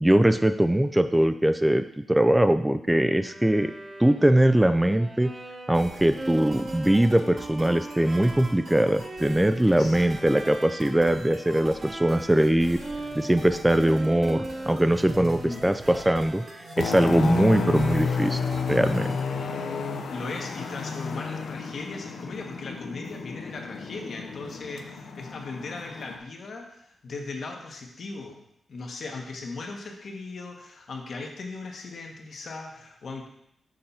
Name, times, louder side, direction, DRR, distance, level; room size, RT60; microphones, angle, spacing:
voice 1, 0.0-3.7 4.0-5.3 5.7-12.8 13.1-16.4 16.8-18.4 18.7-19.2, right 1 dB, 10° right, 9 dB, 0.3 m, -21 dB
Bowed string instrument, 3.2-12.5 12.8-18.6, right 1 dB, 30° right, 1.1 m, -40 dB
sound 1, 5.7-19.3, right 2 dB, 55° right, 1.6 m, -43 dB
voice 2, 9.6-10.4 15.4-15.7 20.1-28.4 28.7-33.3, left 3 dB, 60° left, 1 dB, 1.3 m, -38 dB
sound 2, 16.7-26.2, left 4 dB, 80° left, 0.7 m, -31 dB
6.6 x 4.1 x 5.6 m, 0.75 s
cardioid pair, 100°, 0 cm